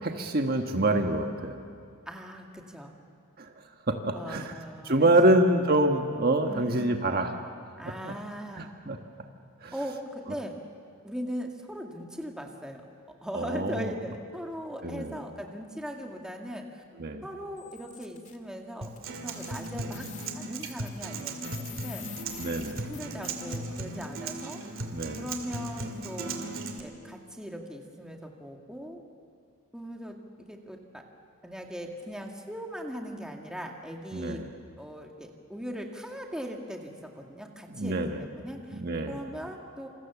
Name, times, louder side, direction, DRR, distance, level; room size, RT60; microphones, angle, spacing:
voice 1, 0.0-1.6 3.4-3.5 3.9-4.5 4.8-7.3 7.8-8.1 8.5-9.0 9.6-9.7 13.3-13.9 14.8-15.2 17.0-17.2 22.4-22.9 24.9-25.3 34.1-34.5 37.7-38.2 38.7-39.2, right 1 dB, 45° right, 4 dB, 1.5 m, -26 dB
voice 2, 2.1-3.0 4.1-5.4 6.5-7.2 7.8-8.8 9.7-10.6 11.0-12.8 13.2-16.8 17.2-18.9 19.2-20.1 20.3-22.1 22.9-24.6 25.2-29.0 29.7-30.2 30.5-31.0 31.4-34.4 34.8-38.8 39.1-39.9, equal, 5° right, 1 dB, 2.1 m, -39 dB
sound 1, 17.6-18.4 19.0-19.1 19.3-23.6, left 9 dB, 35° left, 1.9 m, -46 dB
Acoustic guitar, 18.8-26.8, right 2 dB, 65° right, 2.5 m, -37 dB
27.5 x 27.5 x 7.2 m, 2.3 s
head